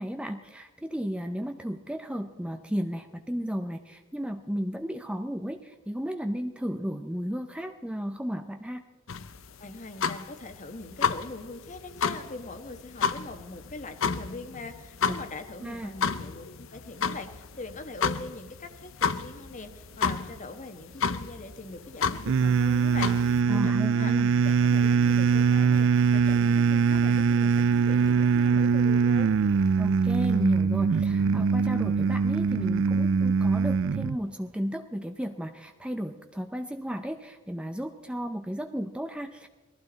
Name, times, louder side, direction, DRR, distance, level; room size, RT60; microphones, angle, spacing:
voice 1, 0.0-8.9 15.6-15.9 23.5-24.3 29.7-39.5, equal, 5° right, 6 dB, 0.6 m, -34 dB
sound 1, 9.1-23.4, left 5 dB, 65° left, 0.7 m, -32 dB
voice 2, 9.6-24.1 24.4-29.3, left 2 dB, 35° left, 7 dB, 1.3 m, -42 dB
sound 2, 22.3-34.2, right 5 dB, 60° right, 0.4 m, -23 dB
20.0 x 14.5 x 4.0 m, 1.3 s
head